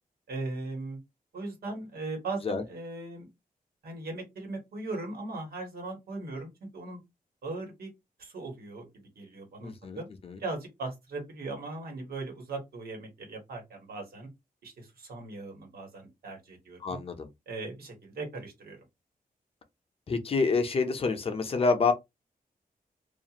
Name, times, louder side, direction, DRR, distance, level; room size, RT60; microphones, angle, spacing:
voice 1, 0.3-1.0 1.3-3.3 3.8-7.0 7.4-7.9 8.2-10.1 10.4-14.3 14.6-17.0 17.5-18.8, right 2 dB, 80° right, 1.2 m, -39 dB
voice 2, 9.6-10.4 16.8-17.3 20.1-21.9, left 4 dB, 40° left, 0.5 m, -28 dB
2.4 x 2.4 x 2.8 m
wide cardioid pair, 155°, 15 cm